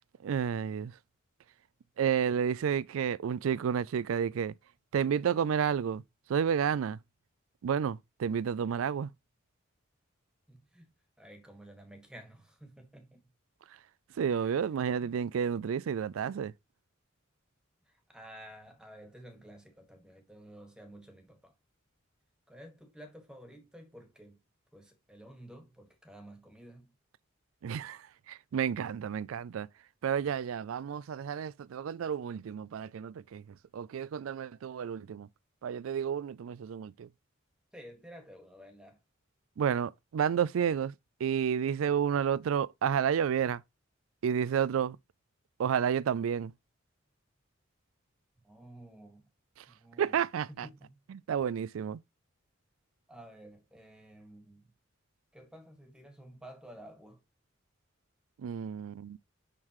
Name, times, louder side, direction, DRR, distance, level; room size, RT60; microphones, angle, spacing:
voice 1, 0.2-0.9 2.0-4.5 4.9-6.0 6.3-7.0 7.6-9.1 14.2-16.5 27.6-29.7 30.0-35.3 35.6-37.1 39.6-43.6 44.2-45.0 45.6-46.5 49.6-49.7 50.0-50.7 51.1-52.0 58.4-59.2, right 7 dB, 85° right, 0.3 m, -31 dB
voice 2, 10.5-10.9 11.2-13.3 14.2-14.6 15.0-15.1 17.8-21.5 22.5-24.4 24.7-26.9 37.7-39.0 48.4-49.3 49.7-50.2 50.5-51.0 53.1-54.7 55.3-57.2, right 1 dB, 5° right, 1.7 m, -52 dB
11.0 x 3.8 x 3.0 m
head